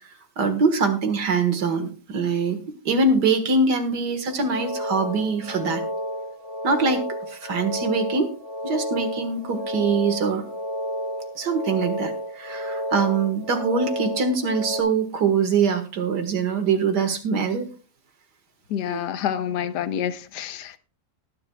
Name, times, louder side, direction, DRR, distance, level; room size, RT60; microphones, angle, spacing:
voice 1, 0.4-2.6 2.9-5.8 6.6-7.0 7.3-8.3 8.6-10.4 11.4-17.7 18.9-19.0, right 4 dB, 80° right, 2.2 m, -23 dB
sound 1, 4.3-14.8, equal, 40° left, 6.6 m, -31 dB
voice 2, 18.7-20.8, left 9 dB, 90° left, 1.3 m, -28 dB
19.0 x 10.5 x 2.3 m
omnidirectional pair, 1.8 m